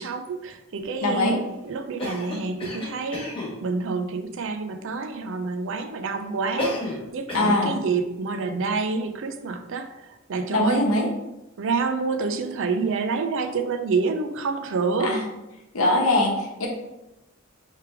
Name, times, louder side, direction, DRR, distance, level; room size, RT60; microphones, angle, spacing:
voice 1, 0.0-10.8 11.6-15.2, right 4 dB, 65° right, 8 dB, 0.5 m, -28 dB
voice 2, 1.0-1.4 7.3-7.7 10.5-11.1 15.0-15.2 15.7-16.7, left 2 dB, 80° left, 0 dB, 0.9 m, -22 dB
Cough, 2.0-3.6 6.6-7.0 7.3-7.7, left 1 dB, 25° left, 1.3 m, -31 dB
3.3 x 3.2 x 4.5 m, 0.95 s
head